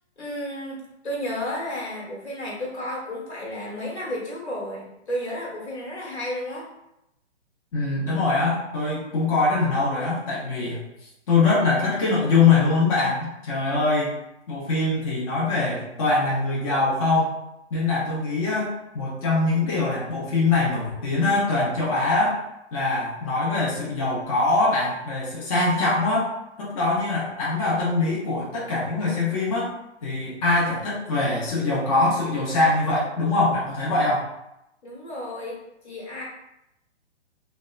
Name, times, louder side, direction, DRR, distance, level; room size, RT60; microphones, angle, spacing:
voice 1, 0.2-6.7 34.8-35.6 35.8-36.2, left 1 dB, 70° left, -4 dB, 1.2 m, -32 dB
voice 2, 7.7-10.8 11.3-14.1 14.5-17.4 17.7-22.4 22.7-26.3 26.6-29.7 30.0-34.3, left 3 dB, 30° left, -6 dB, 0.5 m, -23 dB
2.7 x 2.1 x 2.2 m, 0.86 s
figure-of-eight pair, 130°, 35 cm